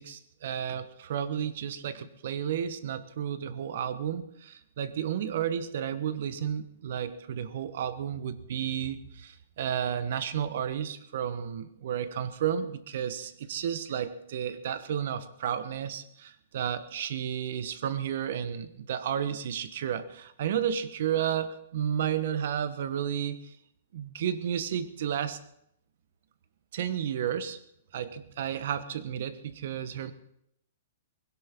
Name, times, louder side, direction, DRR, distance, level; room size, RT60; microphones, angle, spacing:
voice 1, 0.0-23.6 23.9-25.4 26.7-27.6 27.9-30.1, right 9 dB, 55° right, 13 dB, 1.1 m, -32 dB
20.5 x 17.0 x 3.7 m, 0.75 s
hypercardioid pair, 160°, 0 cm